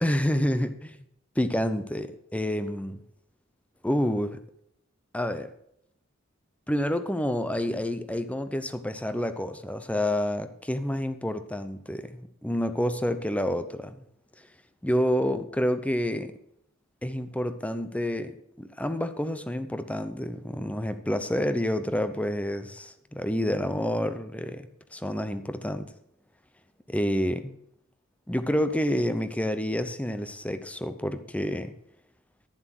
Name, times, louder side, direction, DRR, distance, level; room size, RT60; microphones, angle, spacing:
voice 1, 0.0-1.0 1.4-3.0 3.8-4.4 5.1-5.5 6.7-13.9 14.8-16.3 17.0-25.9 26.9-27.6 28.3-31.7, equal, 5° left, 10 dB, 0.7 m, -28 dB
11.5 x 7.4 x 6.1 m, 0.73 s
head